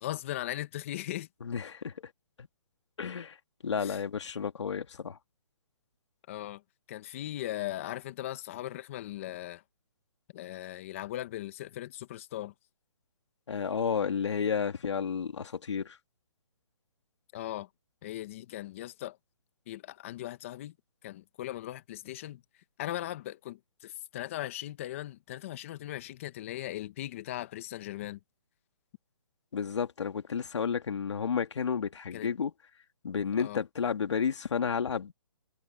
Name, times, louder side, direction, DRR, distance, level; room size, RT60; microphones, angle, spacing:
voice 1, 0.0-1.3 3.8-4.0 6.3-6.6 6.9-9.6 10.3-12.5 17.3-17.7 18.0-19.2 19.7-20.7 21.0-22.4 22.8-28.2 32.1-32.3 33.4-33.6, left 14 dB, 25° left, 1.6 m, -38 dB
voice 2, 1.4-1.9 2.4-2.5 3.0-3.4 3.6-5.2 13.5-16.0 29.5-32.5 33.0-35.1, left 6 dB, 65° left, 2.8 m, -31 dB
hypercardioid pair, 170°, 16 cm